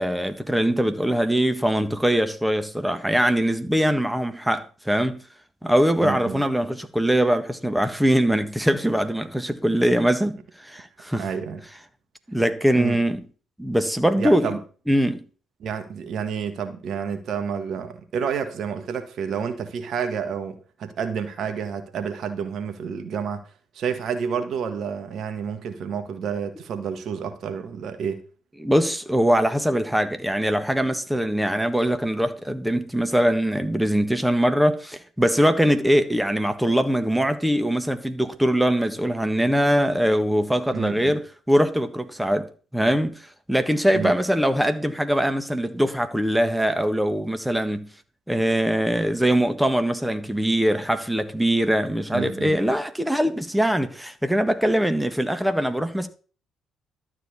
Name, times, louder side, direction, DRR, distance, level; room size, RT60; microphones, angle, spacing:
voice 1, 0.0-5.2 5.6-11.2 12.3-13.2 13.6-14.5 14.9-15.2 28.6-43.2 43.5-47.9 48.3-56.1, equal, 5° right, 1.5 m, -22 dB
voice 2, 6.0-6.4 11.1-11.6 12.8-13.0 14.1-14.6 15.6-23.4 23.7-28.2 40.7-41.1 43.9-44.1 52.1-52.6, right 7 dB, 55° right, 1.6 m, -29 dB
12.0 x 4.5 x 8.3 m
figure-of-eight pair, 45°, 0 cm